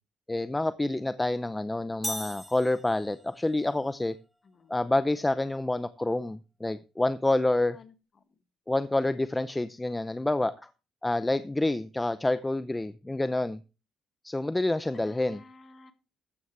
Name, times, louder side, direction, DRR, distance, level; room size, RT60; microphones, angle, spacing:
voice 1, 0.3-4.1 4.7-7.8 8.7-10.7 11.0-13.6 14.2-15.4, left 2 dB, 15° left, 13 dB, 0.7 m, -28 dB
sound 1, 2.0-3.4, equal, 5° right, 2.2 m, -38 dB
voice 2, 4.4-4.9 7.6-7.9 14.9-15.9, left 4 dB, 45° left, 9 dB, 1.9 m, -53 dB
14.5 x 9.4 x 3.3 m, 0.31 s
cardioid pair, 90°, 0 cm